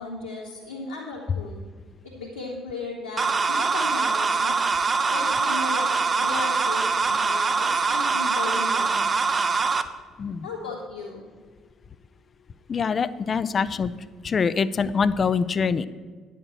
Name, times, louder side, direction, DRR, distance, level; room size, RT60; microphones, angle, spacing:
voice 1, 0.0-1.6 2.0-4.5 5.1-9.2 10.4-11.2, left 3 dB, 85° left, -11 dB, 1.8 m, -35 dB
sound 1, 3.2-9.8, right 4 dB, 30° right, 0.6 m, -23 dB
voice 2, 12.7-13.9 14.2-15.9, left 5 dB, 40° left, 15 dB, 0.4 m, -24 dB
9.6 x 6.6 x 6.6 m, 1.5 s
figure-of-eight pair, 50°, 0 cm